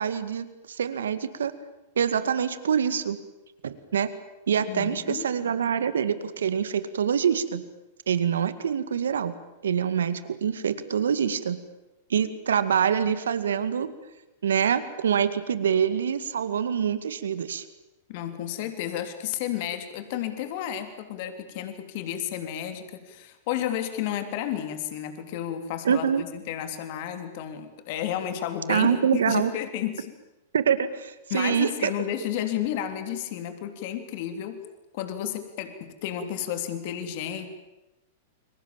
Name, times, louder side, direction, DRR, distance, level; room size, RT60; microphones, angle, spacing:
voice 1, 0.0-1.5 2.0-3.2 3.6-4.1 4.5-7.6 8.1-9.3 9.6-11.6 12.1-13.9 14.4-17.7 25.9-26.2 28.7-29.5 30.5-31.9, right 8 dB, 80° right, 13 dB, 2.1 m, -25 dB
voice 2, 4.7-5.3 18.1-30.1 31.3-34.6 34.9-37.5, left 11 dB, 55° left, 8 dB, 3.5 m, -32 dB
30.0 x 22.5 x 7.4 m, 0.99 s
hypercardioid pair, 110°, 0 cm